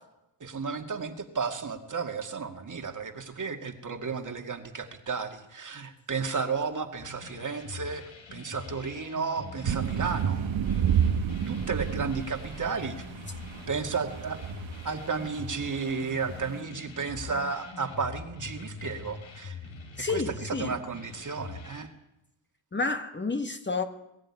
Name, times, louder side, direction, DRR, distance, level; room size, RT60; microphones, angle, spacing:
voice 1, 0.4-8.0 8.3-10.5 11.5-13.1 13.7-14.5 14.8-19.6 20.1-21.9, right 5 dB, 40° right, 2.2 m, -33 dB
sound 1, 7.0-21.8, left 5 dB, 80° left, 4.2 m, -44 dB
sound 2, 9.6-16.6, right 8 dB, 70° right, 1.8 m, -31 dB
voice 2, 20.0-20.8 22.7-23.8, left 3 dB, 25° left, 1.5 m, -30 dB
22.0 x 14.5 x 9.8 m
wide cardioid pair, 135°, 48 cm